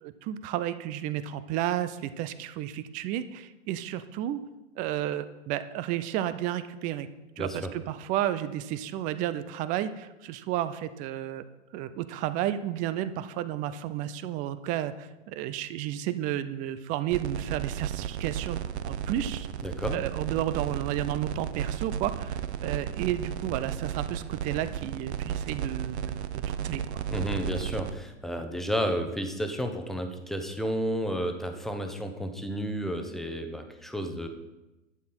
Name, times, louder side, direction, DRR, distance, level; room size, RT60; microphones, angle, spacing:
voice 1, 0.0-4.4 4.8-7.1 7.4-11.4 11.7-18.6 18.8-19.5 19.9-26.2 26.5-27.0, right 12 dB, 20° right, 13 dB, 0.4 m, -32 dB
voice 2, 7.4-7.7 19.6-20.0 27.1-34.3, equal, ahead, 5 dB, 0.9 m, -32 dB
sound 1, 17.1-27.9, right 9 dB, 55° right, 0.7 m, -34 dB
11.5 x 8.6 x 4.3 m, 1.0 s
hypercardioid pair, 110°, 38 cm